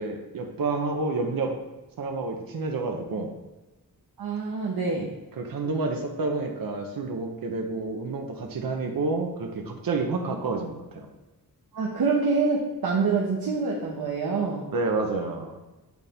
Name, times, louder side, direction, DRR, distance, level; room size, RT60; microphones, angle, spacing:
voice 1, 0.0-1.5 2.0-3.3 5.4-11.1 14.7-15.6, right 3 dB, 70° right, 2 dB, 0.9 m, -29 dB
voice 2, 4.2-5.1 11.7-14.7, right 4 dB, 85° right, -3 dB, 1.0 m, -26 dB
8.2 x 4.1 x 3.5 m, 1.1 s
wide cardioid pair, 165°, 36 cm